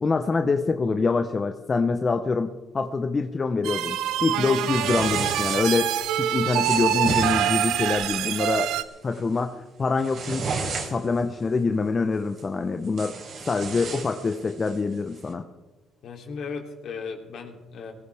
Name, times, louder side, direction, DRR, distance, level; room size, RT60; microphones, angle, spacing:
voice 1, 0.0-5.9 6.2-8.7 9.0-10.5 10.9-13.1 13.5-15.4, left 4 dB, 35° left, 7 dB, 1.0 m, -25 dB
sound 1, 3.6-8.8, right 11 dB, 80° right, 0.7 m, -25 dB
sound 2, 4.6-5.8 6.5-7.9 8.4-8.7 9.1-9.4 9.8-11.2 12.4-12.5 12.8-14.8, right 4 dB, 60° right, 4.1 m, -33 dB
voice 2, 16.0-17.9, left 5 dB, 65° left, 2 dB, 3.1 m, -36 dB
22.0 x 14.5 x 3.6 m, 1.2 s
cardioid pair, 85°, 0 cm